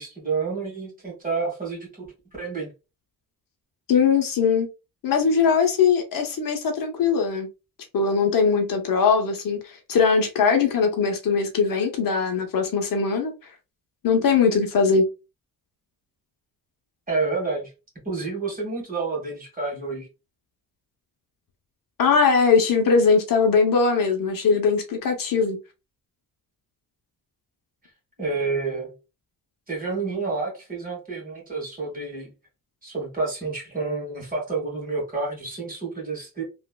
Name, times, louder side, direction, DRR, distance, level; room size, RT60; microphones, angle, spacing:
voice 1, 0.0-2.7 17.1-17.7 18.0-20.1 28.2-28.9 29.7-32.3 32.8-36.4, right 4 dB, 20° right, 1.5 m, -29 dB
voice 2, 3.9-4.7 5.0-7.5 7.9-13.3 14.0-15.1 22.0-25.6, left 5 dB, 60° left, 0.8 m, -20 dB
3.0 x 2.4 x 2.2 m
cardioid pair, 115°, 37 cm